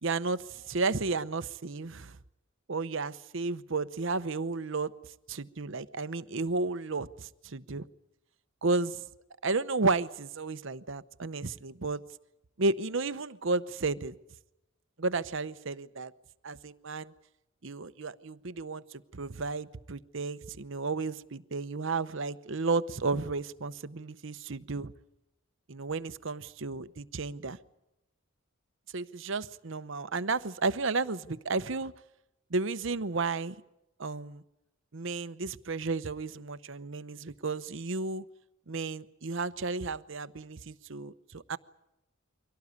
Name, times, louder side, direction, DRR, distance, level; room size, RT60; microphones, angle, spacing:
voice 1, 0.0-2.2 2.7-4.9 5.3-7.8 8.6-9.0 9.4-12.0 12.6-14.1 15.0-16.1 16.4-17.1 17.6-18.8 19.1-24.9 25.7-27.6 28.9-31.9 32.5-33.6 34.0-34.4 34.9-38.2 38.7-41.6, right 3 dB, 60° right, 13 dB, 0.9 m, -33 dB
24.5 x 17.5 x 9.6 m, 0.90 s
head